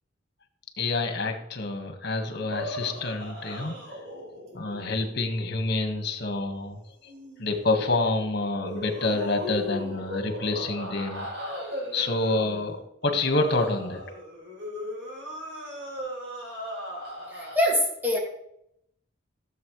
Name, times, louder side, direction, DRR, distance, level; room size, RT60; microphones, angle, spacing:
voice 1, 0.8-3.8 4.5-6.8 7.4-14.1, left 2 dB, 60° left, 5 dB, 1.7 m, -28 dB
sound 1, 2.5-6.0 7.1-7.5 8.6-17.6, equal, 70° right, 4.8 m, -37 dB
voice 2, 17.3-18.2, left 1 dB, 10° right, -2 dB, 2.2 m, -24 dB
15.0 x 7.6 x 3.2 m, 0.78 s
head